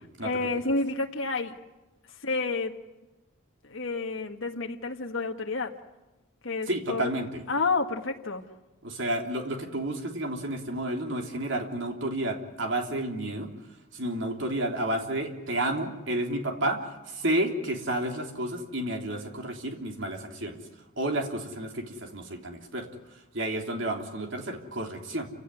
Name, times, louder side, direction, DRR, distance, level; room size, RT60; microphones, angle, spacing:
voice 1, 0.2-1.5 2.2-2.7 3.7-5.7 6.4-7.0 7.5-8.4, left 3 dB, 65° left, 2 dB, 1.7 m, -29 dB
voice 2, 6.7-7.4 8.8-13.5 13.9-20.6 21.0-22.9 23.3-25.3, right 1 dB, 60° right, 3 dB, 3.3 m, -31 dB
29.0 x 17.0 x 9.9 m, 1.1 s
head